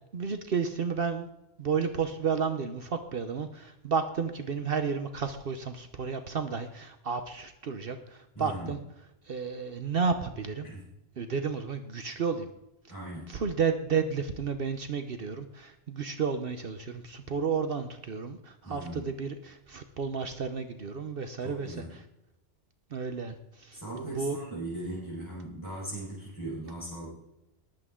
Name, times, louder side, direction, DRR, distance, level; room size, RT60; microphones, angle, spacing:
voice 1, 0.1-1.3 1.6-8.8 9.2-10.7 11.2-12.5 13.3-22.0 22.9-24.4, right 5 dB, 55° right, 8 dB, 1.0 m, -32 dB
voice 2, 8.3-8.7 10.6-10.8 12.9-13.3 18.6-19.1 21.4-21.9 23.7-27.1, right 1 dB, 15° left, -8 dB, 4.5 m, -39 dB
19.5 x 8.3 x 3.7 m, 0.88 s
omnidirectional pair, 1.2 m